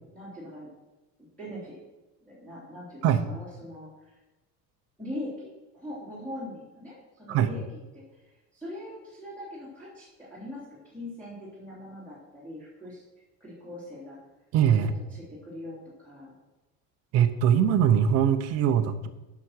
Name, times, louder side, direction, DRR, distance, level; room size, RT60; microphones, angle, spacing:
voice 1, 0.0-0.7 1.4-1.8 2.3-4.1 5.0-7.6 7.9-8.2 8.5-13.0 13.4-14.2 14.7-16.3, left 1 dB, 5° left, -10 dB, 3.1 m, -41 dB
voice 2, 14.5-14.9 17.1-19.1, right 9 dB, 40° right, 10 dB, 0.7 m, -22 dB
10.5 x 5.8 x 6.4 m, 1.0 s
cardioid pair, 180°, 36 cm